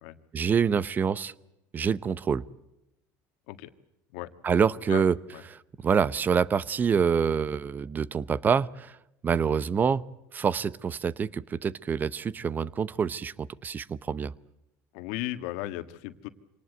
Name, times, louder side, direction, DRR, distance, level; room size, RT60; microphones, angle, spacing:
voice 1, 0.3-1.3 1.7-2.4 4.4-5.2 5.5-9.0 9.2-10.0 10.3-14.3, right 6 dB, 25° right, 19 dB, 0.8 m, -26 dB
voice 2, 14.9-16.3, left 16 dB, 80° left, 10 dB, 1.6 m, -35 dB
25.5 x 19.0 x 8.0 m, 0.89 s
supercardioid pair, 120°, 7 cm